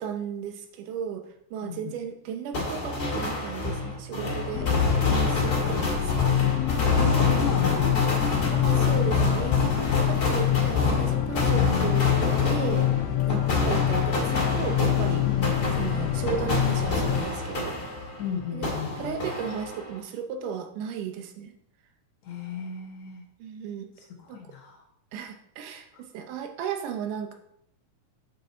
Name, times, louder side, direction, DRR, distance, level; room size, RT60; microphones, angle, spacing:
voice 1, 0.0-4.7 5.1-6.1 8.5-12.9 13.3-15.3 15.8-17.8 18.5-21.6 23.4-23.9 24.3-24.4 25.1-27.3, right 7 dB, 80° right, 5 dB, 2.4 m, -35 dB
voice 2, 1.6-2.0 5.5-5.6 7.0-7.9 11.6-12.0 15.2-15.4 18.2-19.2 22.2-23.2 24.2-24.8 25.9-26.0, left 7 dB, 70° left, 1 dB, 1.9 m, -34 dB
sound 1, 2.5-18.3 18.6-20.0, left 2 dB, 35° left, 2.2 m, -28 dB
sound 2, 4.5-17.2, left 13 dB, 85° left, 1.5 m, -26 dB
8.2 x 5.4 x 3.9 m, 0.74 s
omnidirectional pair, 3.7 m